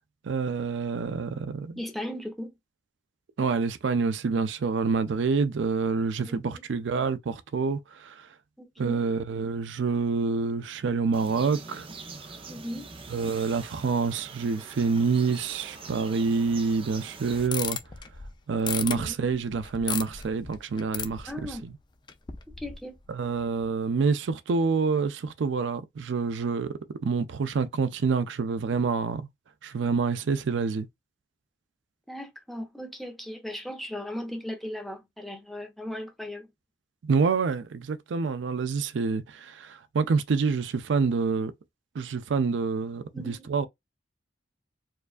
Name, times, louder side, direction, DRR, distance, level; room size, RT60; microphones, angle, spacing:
voice 1, 0.2-1.8 3.4-8.3 8.8-11.9 13.1-17.8 18.5-21.6 23.1-26.7 27.0-29.3 29.6-30.9 37.0-41.5 41.9-43.7, right 5 dB, 75° right, 0.4 m, -27 dB
voice 2, 1.8-2.5 6.2-6.6 8.6-9.0 12.5-12.9 18.9-19.1 21.3-21.6 22.5-23.0 32.1-36.5 43.1-43.5, left 1 dB, ahead, 0.8 m, -37 dB
sound 1, 11.1-17.5, right 4 dB, 30° right, 0.6 m, -44 dB
sound 2, 17.3-21.7 22.1-23.1 23.4-23.7, left 7 dB, 25° left, 0.4 m, -36 dB
4.5 x 2.4 x 2.4 m
head